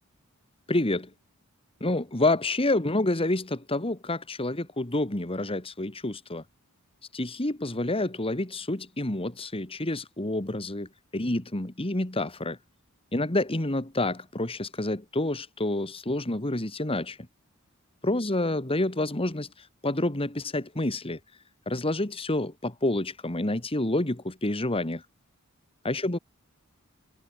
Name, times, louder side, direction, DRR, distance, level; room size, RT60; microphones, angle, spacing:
voice 1, 0.7-1.1 1.8-6.4 7.1-12.6 13.1-17.2 18.0-21.2 21.7-25.0 25.8-26.2, left 2 dB, 25° left, 2.0 m, -28 dB
head